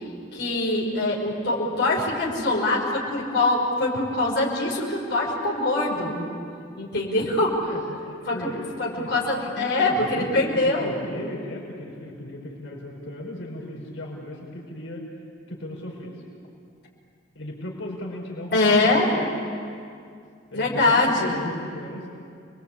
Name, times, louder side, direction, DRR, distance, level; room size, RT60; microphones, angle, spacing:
voice 1, 0.3-6.2 6.8-7.6 8.3-8.5 8.8-11.0 18.5-19.1 20.5-21.4, left 2 dB, 60° left, -3 dB, 5.3 m, -23 dB
voice 2, 7.6-15.1 15.5-16.2 17.4-19.4 20.5-22.1, left 1 dB, 80° left, -1 dB, 5.3 m, -37 dB
29.5 x 22.5 x 8.6 m, 2.4 s
head